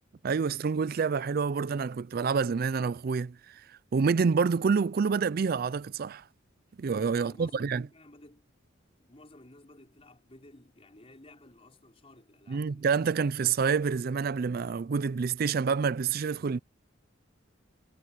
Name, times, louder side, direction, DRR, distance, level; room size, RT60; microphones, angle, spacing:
voice 1, 0.2-3.6 3.9-6.2 6.8-7.8 12.5-16.6, right 5 dB, 50° right, 0.4 m, -27 dB
voice 2, 7.1-8.5 9.0-13.3, left 1 dB, 30° left, 4.7 m, -54 dB
head